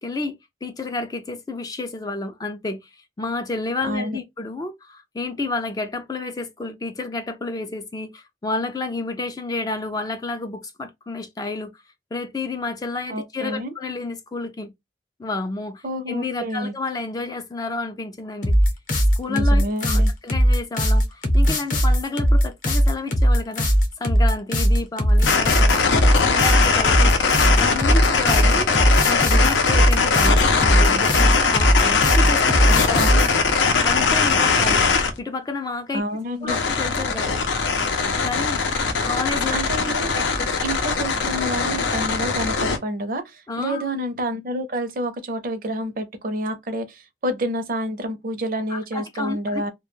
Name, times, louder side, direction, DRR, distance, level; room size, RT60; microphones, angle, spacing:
voice 1, 0.0-2.9 3.2-11.8 12.1-14.7 15.2-18.6 19.2-23.7 24.0-25.9 26.3-27.1 27.6-28.7 29.0-33.2 33.8-34.8 35.2-36.0 36.4-37.4 38.2-38.6 39.0-39.6 39.9-40.0 40.4-40.5 43.5-43.9 48.7-49.7, left 3 dB, 20° left, 0.3 m, -30 dB
voice 2, 3.8-4.2 13.1-13.7 15.8-16.7 19.3-20.1 32.7-33.2 35.9-36.6 39.5-40.2 40.6-49.7, equal, 50° right, 0.5 m, -28 dB
sound 1, 18.4-33.3, equal, 45° left, 0.7 m, -18 dB
sound 2, 25.3-35.1 36.5-42.8, left 4 dB, 90° left, 0.6 m, -20 dB
2.2 x 2.1 x 3.0 m
head